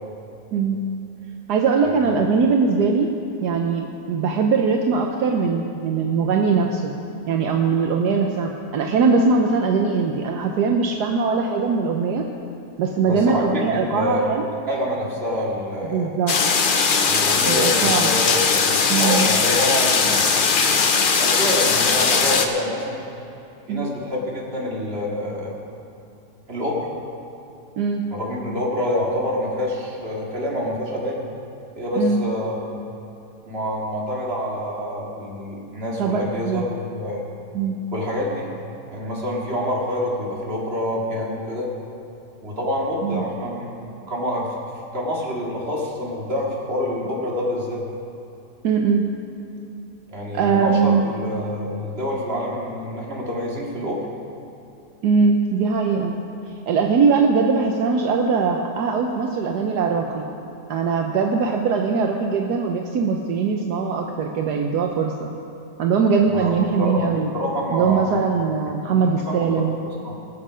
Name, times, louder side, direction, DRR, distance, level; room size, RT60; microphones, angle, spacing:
voice 1, 0.5-0.9 1.5-3.1 3.4-6.9 7.3-12.2 12.8-14.5 15.9-16.3 17.5-18.1 18.9-19.2 23.7-23.9 27.8-28.1 32.0-32.2 36.0-36.6 37.5-37.8 43.0-43.2 48.6-49.1 50.3-51.1 55.0-56.1 56.7-60.3 60.7-65.3 65.8-67.3 67.7-69.8, right 5 dB, 75° right, 2 dB, 1.3 m, -21 dB
voice 2, 13.0-14.2 14.7-16.1 17.0-20.5 21.2-23.0 23.7-25.5 26.5-26.9 28.1-31.2 31.8-32.6 33.4-37.3 37.9-38.5 38.9-41.7 42.4-43.7 44.1-44.5 44.9-47.9 50.1-54.0 66.3-67.1 67.3-68.2 69.2-70.1, left 1 dB, 35° right, -3 dB, 2.3 m, -27 dB
sound 1, 16.3-22.5, left 5 dB, 45° left, 0.7 m, -19 dB
20.0 x 7.6 x 5.0 m, 2.8 s
omnidirectional pair, 1.8 m